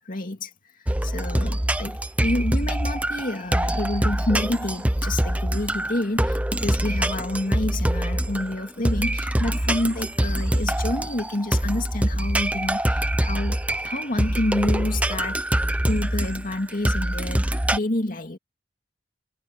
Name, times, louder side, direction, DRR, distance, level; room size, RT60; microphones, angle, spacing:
voice 1, 0.1-0.5 0.8-15.6 15.8-18.4, left 1 dB, 45° left, 2.4 m, -28 dB
sound 1, 0.9-17.8, right 1 dB, 5° right, 0.9 m, -24 dB
head